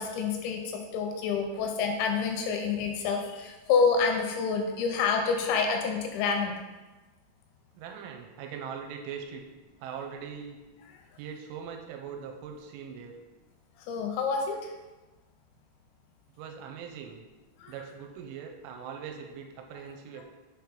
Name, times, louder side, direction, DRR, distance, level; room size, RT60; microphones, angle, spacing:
voice 1, 0.0-6.6 13.9-14.7 17.6-17.7, left 5 dB, 85° left, 3 dB, 2.7 m, -28 dB
voice 2, 7.7-9.4 9.8-10.6 11.2-13.2 16.4-17.2 17.7-20.2, right 7 dB, 90° right, 3 dB, 3.1 m, -41 dB
7.0 x 3.2 x 5.1 m, 1.2 s
omnidirectional pair, 5.5 m